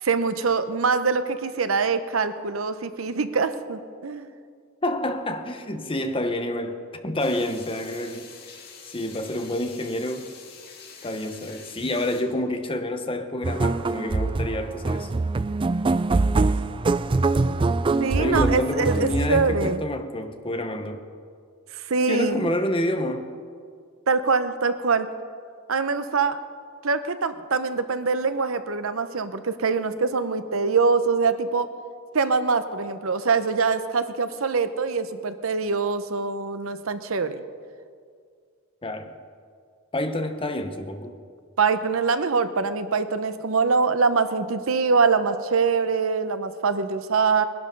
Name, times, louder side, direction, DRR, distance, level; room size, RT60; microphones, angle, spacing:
voice 1, 0.0-4.3 18.0-19.8 21.7-22.5 24.1-25.1 25.7-26.4 26.8-31.7 32.1-37.4 41.6-47.4, right 4 dB, 70° right, 0.8 m, -24 dB
voice 2, 4.8-8.3 8.9-10.3 11.0-15.1 18.2-21.0 22.1-23.3 38.8-39.1 39.9-41.2, left 1 dB, 25° left, 1.0 m, -28 dB
sound 1, 7.2-12.2, left 6 dB, 45° left, 2.1 m, -45 dB
sound 2, 13.4-19.8, right 3 dB, 25° right, 0.3 m, -24 dB
20.5 x 11.5 x 5.4 m
head